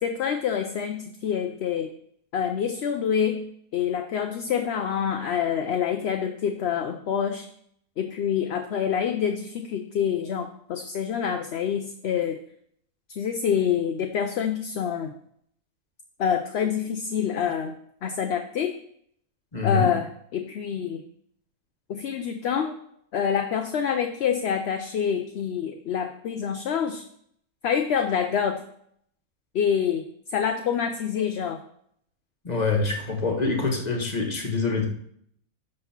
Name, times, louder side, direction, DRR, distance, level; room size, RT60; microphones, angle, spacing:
voice 1, 0.0-1.9 2.3-3.4 3.7-7.5 8.0-12.4 13.1-15.1 16.2-17.8 18.0-18.7 19.6-21.0 21.9-22.7 23.1-27.0 27.6-28.6 29.5-30.1 30.3-31.6, left 8 dB, 60° left, 6 dB, 0.8 m, -26 dB
voice 2, 19.5-19.9 32.4-34.9, left 4 dB, 30° left, 1 dB, 1.5 m, -25 dB
11.5 x 3.8 x 5.9 m, 0.68 s
omnidirectional pair, 1.5 m